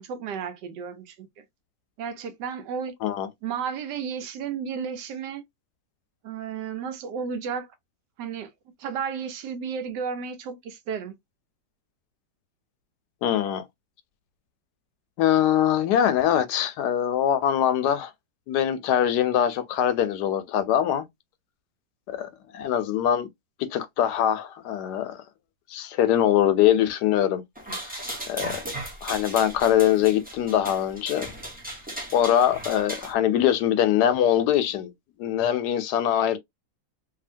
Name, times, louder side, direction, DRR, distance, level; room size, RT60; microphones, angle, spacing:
voice 1, 0.0-1.4 2.0-2.9 3.4-5.4 6.2-7.7 8.2-8.5 8.8-11.2, right 6 dB, 85° right, 1.3 m, -33 dB
voice 2, 13.2-13.6 15.2-18.1 18.5-21.1 22.1-23.3 23.7-25.2 25.7-27.4 27.8-27.9 28.3-28.6 29.0-31.3 32.1-34.9 35.2-36.4, left 10 dB, 75° left, 1.1 m, -23 dB
sound 1, 27.5-33.1, right 1 dB, 10° right, 0.5 m, -36 dB
2.8 x 2.7 x 2.5 m
omnidirectional pair, 1.8 m